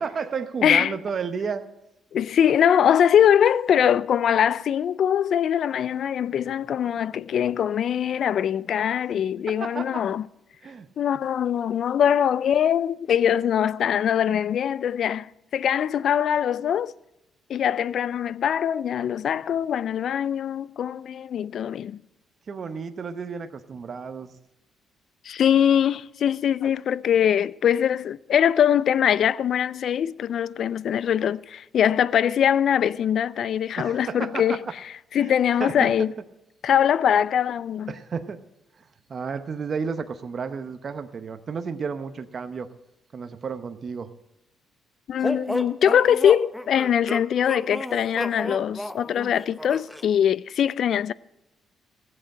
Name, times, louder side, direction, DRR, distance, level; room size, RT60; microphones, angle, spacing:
voice 1, 0.0-1.6 9.5-10.0 10.6-10.9 22.5-24.4 33.8-34.6 35.2-35.3 35.6-35.9 37.9-38.4 38.8-38.9 39.1-42.7 43.1-44.1, right 5 dB, 45° right, 0.8 m, -32 dB
voice 2, 0.6-0.9 2.1-10.2 11.0-16.9 17.5-22.0 25.2-34.6 35.1-36.1 36.6-37.9 45.1-51.1, left 9 dB, 65° left, 0.4 m, -22 dB
sound 1, 45.2-50.0, left 1 dB, 5° left, 0.8 m, -32 dB
15.0 x 7.7 x 7.6 m
cardioid pair, 90°, 0 cm